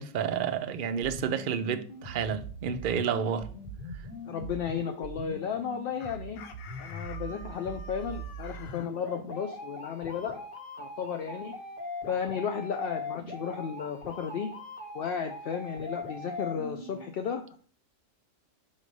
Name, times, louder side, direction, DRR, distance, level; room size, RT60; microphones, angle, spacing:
voice 1, 0.0-3.5, right 7 dB, 60° right, 0.5 m, -30 dB
sound 1, 1.0-17.0, left 1 dB, 40° left, 1.4 m, -41 dB
voice 2, 4.3-6.4 6.8-10.4 10.8-11.5 12.1-14.5 14.9-17.6, left 7 dB, 60° left, 0.6 m, -34 dB
Chicken rooster, 6.0-8.9, left 5 dB, 80° left, 1.1 m, -48 dB
5.6 x 3.2 x 5.3 m
omnidirectional pair, 1.4 m